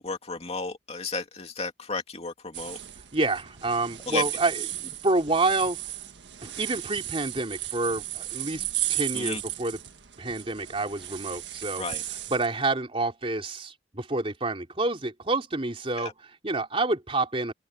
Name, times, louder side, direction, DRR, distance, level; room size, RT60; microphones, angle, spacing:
voice 1, 0.0-2.8 4.1-4.2 9.1-9.4 11.8-12.0 16.0-16.1, left 4 dB, 35° left, 2.8 m, -33 dB
sound 1, 2.5-12.5, right 13 dB, 75° right, 1.6 m, -35 dB
voice 2, 3.1-5.8 6.4-9.8 10.2-11.8 12.3-17.5, right 3 dB, 30° right, 3.4 m, -28 dB
open air
head